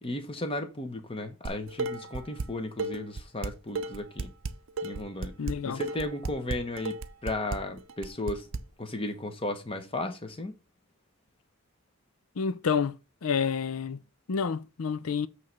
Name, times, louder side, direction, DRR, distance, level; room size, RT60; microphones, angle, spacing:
voice 1, 0.0-4.3 4.8-5.3 5.6-7.0 7.2-8.5 8.8-10.5, left 2 dB, 25° left, 1.0 m, -35 dB
Dishes pots and pans, 1.4-2.5 2.8-8.6, right 3 dB, 60° right, 0.6 m, -34 dB
voice 2, 5.4-5.8 12.4-12.9 13.2-14.0 14.3-15.3, left 6 dB, 75° left, 0.5 m, -29 dB
8.7 x 3.3 x 5.3 m
head